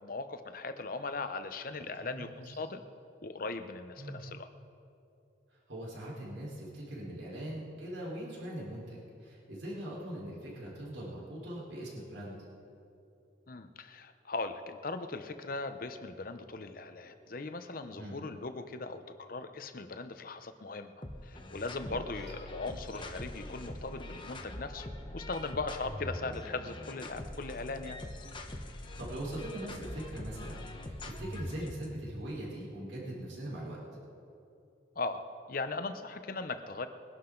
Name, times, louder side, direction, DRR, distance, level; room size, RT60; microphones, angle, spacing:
voice 1, 0.0-2.8 3.2-4.5 13.5-20.9 21.2-24.9 25.1-28.0 35.0-35.2 35.5-36.9, left 3 dB, 50° left, 9 dB, 0.8 m, -39 dB
voice 2, 1.8-2.4 4.0-4.2 5.5-12.3 18.0-18.2 21.9-22.2 29.0-33.8, right 1 dB, 85° right, -5 dB, 4.4 m, -41 dB
sound 1, 21.0-31.9, left 1 dB, 25° left, 1.0 m, -43 dB
22.5 x 11.5 x 3.9 m, 2.7 s
head